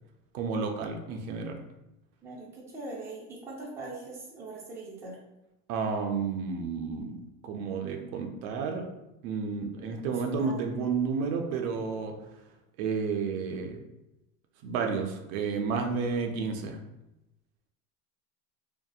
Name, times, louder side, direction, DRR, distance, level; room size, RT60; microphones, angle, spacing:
voice 1, 0.3-1.6 5.7-8.9 9.2-12.1 12.8-13.8 14.6-16.8, right 5 dB, 75° right, 3 dB, 0.5 m, -31 dB
voice 2, 2.2-5.2 10.1-10.7, right 2 dB, 5° right, -6 dB, 0.5 m, -42 dB
2.7 x 2.1 x 2.3 m, 0.92 s
supercardioid pair, 130°, 41 cm